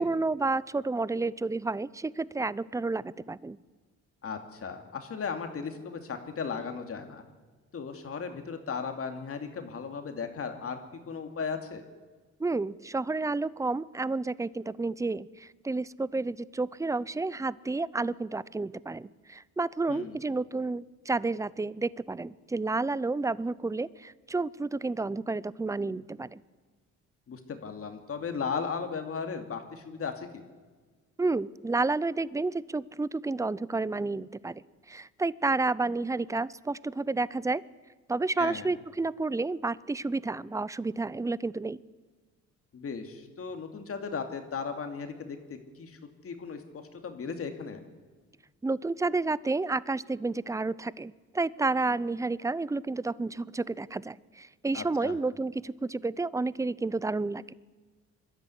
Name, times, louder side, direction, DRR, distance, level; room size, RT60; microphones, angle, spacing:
voice 1, 0.0-3.6 12.4-26.4 31.2-34.6 34.9-37.6 38.1-41.8 48.6-57.5, right 3 dB, 10° right, 20 dB, 0.5 m, -30 dB
voice 2, 4.2-7.2 7.7-10.8 11.1-11.8 19.9-20.2 27.3-30.4 38.4-38.7 42.7-47.8 54.7-55.2, left 5 dB, 50° left, 6 dB, 2.5 m, -36 dB
22.0 x 13.0 x 9.9 m, 1.4 s
cardioid pair, 90°, 30 cm